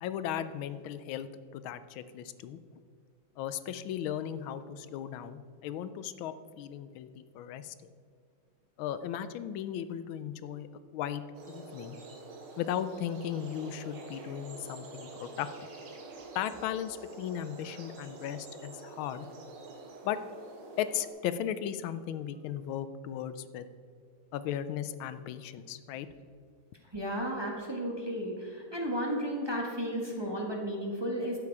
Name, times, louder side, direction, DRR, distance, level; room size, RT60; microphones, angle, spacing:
voice 1, 0.0-1.3 1.5-2.6 3.4-7.7 8.8-10.7 10.9-12.0 12.6-15.5 16.3-19.3 20.0-20.2 20.8-23.7 24.3-26.1, left 10 dB, 85° left, 13 dB, 1.4 m, -36 dB
sound 1, 11.3-21.1, right 3 dB, 90° right, 2.2 m, -47 dB
voice 2, 26.9-31.4, equal, 15° right, -1 dB, 1.3 m, -33 dB
12.0 x 8.7 x 4.7 m, 2.1 s
omnidirectional pair, 2.2 m